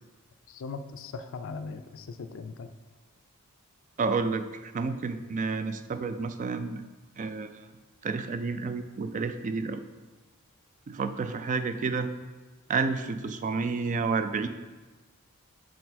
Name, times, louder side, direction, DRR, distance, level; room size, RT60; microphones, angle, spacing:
voice 1, 0.5-2.7, left 4 dB, 60° left, 10 dB, 0.4 m, -39 dB
voice 2, 4.0-6.8 7.2-7.7 8.0-9.8 10.9-12.1 12.7-14.5, right 4 dB, 35° right, 10 dB, 0.3 m, -30 dB
6.2 x 4.5 x 4.1 m, 1.3 s
head